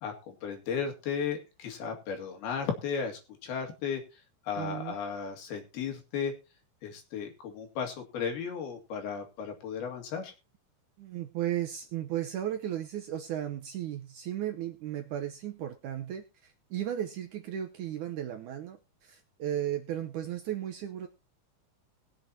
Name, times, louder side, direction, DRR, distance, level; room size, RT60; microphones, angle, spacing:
voice 1, 0.4-4.0 4.5-6.3 6.8-10.3, left 6 dB, 75° left, 3 dB, 4.1 m, -35 dB
voice 2, 4.6-5.0 11.0-21.1, right 11 dB, 75° right, 5 dB, 1.9 m, -35 dB
21.0 x 7.7 x 2.8 m, 0.28 s
omnidirectional pair, 4.4 m